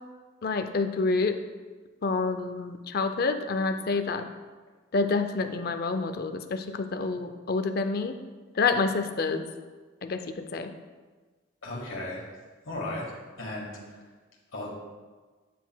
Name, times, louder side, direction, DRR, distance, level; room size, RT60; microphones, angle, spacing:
voice 1, 0.4-1.4 2.0-4.3 4.9-8.2 8.6-9.4 10.0-10.7, left 4 dB, 50° left, 8 dB, 0.4 m, -28 dB
voice 2, 11.6-12.2 12.6-13.1 13.4-14.0 14.5-14.7, left 2 dB, 80° left, -3 dB, 1.6 m, -35 dB
9.1 x 5.9 x 2.2 m, 1.4 s
head